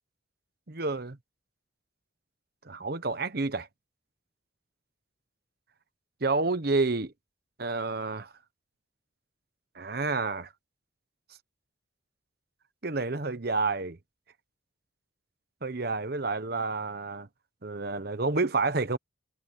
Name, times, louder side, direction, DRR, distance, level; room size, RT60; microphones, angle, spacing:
voice 1, 0.7-1.2 2.6-3.7 6.2-7.1 7.6-8.3 9.7-10.5 12.8-14.0 15.6-17.3 17.6-19.0, right 3 dB, 55° right, 1.0 m, -29 dB
head